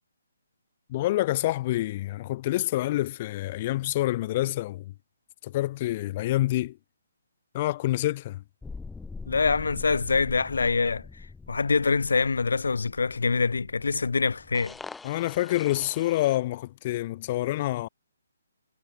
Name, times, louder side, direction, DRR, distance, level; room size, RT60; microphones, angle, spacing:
voice 1, 0.9-4.9 5.4-6.8 7.5-8.4 15.0-17.9, left 16 dB, 30° left, 0.3 m, -27 dB
sound 1, 8.6-16.4, left 4 dB, 5° left, 1.2 m, -44 dB
voice 2, 9.3-11.1 11.5-14.7, left 4 dB, 90° left, 0.6 m, -25 dB
hypercardioid pair, 165°, 0 cm